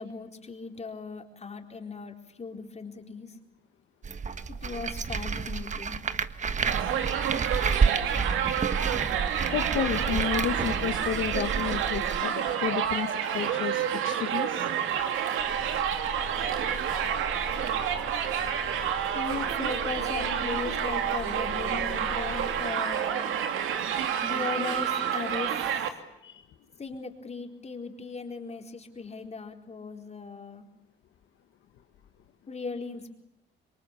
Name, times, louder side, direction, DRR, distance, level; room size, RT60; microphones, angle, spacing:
voice 1, 0.0-3.3 4.5-6.0 19.1-23.3 24.2-25.5 26.8-30.7 32.5-33.1, left 4 dB, 35° left, 4 dB, 4.3 m, -37 dB
sound 1, 4.0-12.2, right 5 dB, 40° right, 1.4 m, -30 dB
Crowd, 6.7-25.9, right 9 dB, 85° right, 2.8 m, -29 dB
voice 2, 9.5-14.7 15.0-15.1 26.2-26.5, left 9 dB, 80° left, 5 dB, 1.8 m, -32 dB
sound 2, 15.4-22.6, left 5 dB, 60° left, 5.9 m, -42 dB
27.0 x 23.0 x 8.5 m, 0.86 s
cardioid pair, 90°, 20 cm